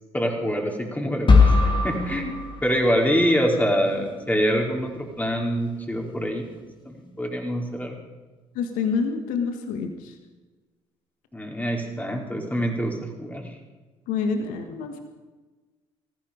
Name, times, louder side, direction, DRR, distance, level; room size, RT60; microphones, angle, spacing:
voice 1, 0.1-1.6 1.8-2.3 2.6-6.4 6.8-8.0 11.3-13.5, equal, 10° left, 1 dB, 4.4 m, -25 dB
sound 1, 1.3-3.3, left 4 dB, 35° left, 2.8 m, -20 dB
voice 2, 8.5-10.1 14.1-15.0, left 5 dB, 75° left, 6 dB, 1.6 m, -27 dB
19.0 x 15.0 x 5.2 m, 1.3 s
hypercardioid pair, 55°, 14 cm